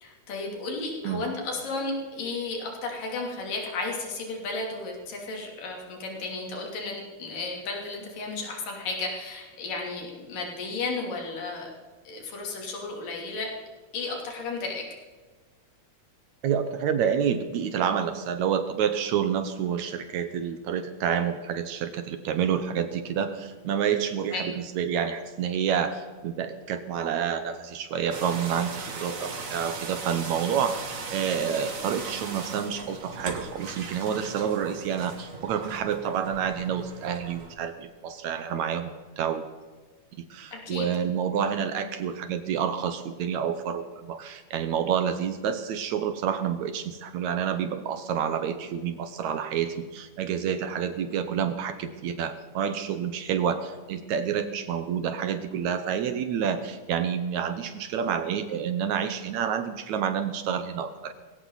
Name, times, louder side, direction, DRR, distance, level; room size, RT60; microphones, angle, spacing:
voice 1, 0.0-11.7 12.0-13.5 13.9-14.9 24.3-24.4 40.5-40.9, left 3 dB, 85° left, 0 dB, 4.6 m, -33 dB
voice 2, 16.4-39.4 40.3-61.1, right 8 dB, 70° right, 9 dB, 2.0 m, -28 dB
sound 1, 28.1-37.5, right 4 dB, 45° right, 1.1 m, -38 dB
19.5 x 17.5 x 4.0 m, 1.4 s
omnidirectional pair, 3.8 m